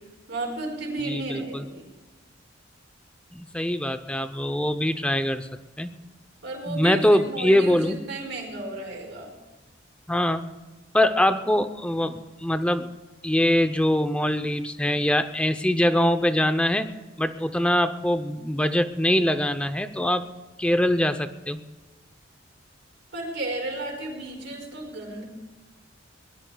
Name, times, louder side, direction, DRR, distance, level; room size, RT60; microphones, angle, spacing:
voice 1, 0.3-1.9 6.4-9.3 23.1-25.2, right 2 dB, 70° right, 0 dB, 4.8 m, -33 dB
voice 2, 1.0-1.6 3.3-5.5 5.8-5.9 6.7-8.0 10.1-10.5 10.9-12.9 13.2-20.3 20.6-21.6, left 1 dB, 5° left, 9 dB, 0.6 m, -23 dB
22.5 x 18.5 x 2.3 m, 1.2 s
head